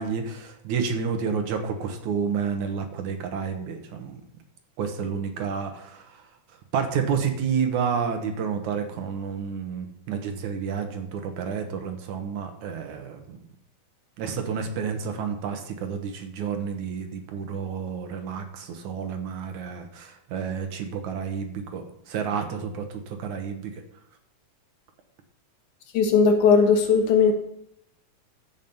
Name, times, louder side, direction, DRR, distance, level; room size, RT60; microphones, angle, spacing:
voice 1, 0.0-4.2 4.8-6.3 6.7-13.4 14.2-23.8, right 6 dB, 70° right, 6 dB, 2.7 m, -30 dB
voice 2, 25.9-27.3, left 5 dB, 80° left, 5 dB, 2.8 m, -18 dB
14.5 x 6.4 x 5.5 m, 0.76 s
omnidirectional pair, 3.6 m